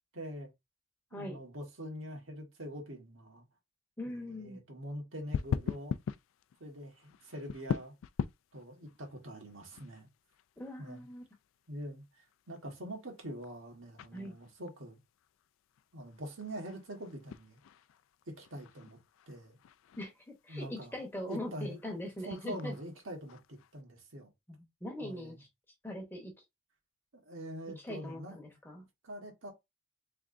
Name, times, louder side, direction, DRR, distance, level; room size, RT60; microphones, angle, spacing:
voice 1, 0.1-0.5 1.1-3.4 4.0-5.9 6.6-7.9 8.5-10.1 10.8-11.1 11.7-15.0 15.9-17.6 18.3-19.0 19.3-19.6 20.5-21.0 21.3-21.8 22.2-24.3 25.0-25.4 27.2-28.4 29.0-29.5, equal, 80° right, 1.4 m, -44 dB
voice 2, 1.1-1.4 4.0-4.6 10.6-11.2 14.1-14.4 20.0-22.7 24.5-25.5 25.8-26.3 27.7-28.9, left 1 dB, 10° left, 0.9 m, -41 dB
sound 1, 5.3-23.8, left 7 dB, 80° left, 0.3 m, -43 dB
3.7 x 3.3 x 2.5 m
head